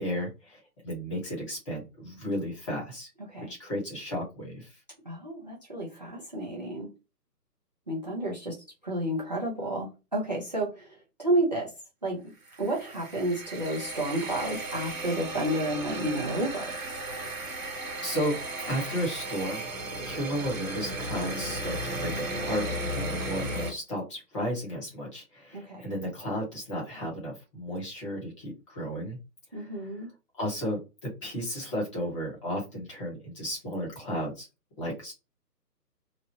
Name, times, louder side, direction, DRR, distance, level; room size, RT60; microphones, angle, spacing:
voice 1, 0.0-3.1 3.4-4.7 18.0-18.4 18.6-19.7 20.0-22.7 23.0-29.2 29.5-29.9 30.3-34.5 34.8-35.1, equal, 20° left, -2 dB, 0.9 m, -33 dB
voice 2, 5.1-6.9 7.9-8.5 8.8-10.8 11.2-11.7 12.0-12.2 12.6-16.7 25.5-25.8 29.5-30.1, right 1 dB, 30° right, -1 dB, 0.5 m, -30 dB
sound 1, 12.5-23.7, right 1 dB, 55° right, 1.3 m, -35 dB
2.9 x 2.1 x 2.7 m, 0.28 s
figure-of-eight pair, 140°, 49 cm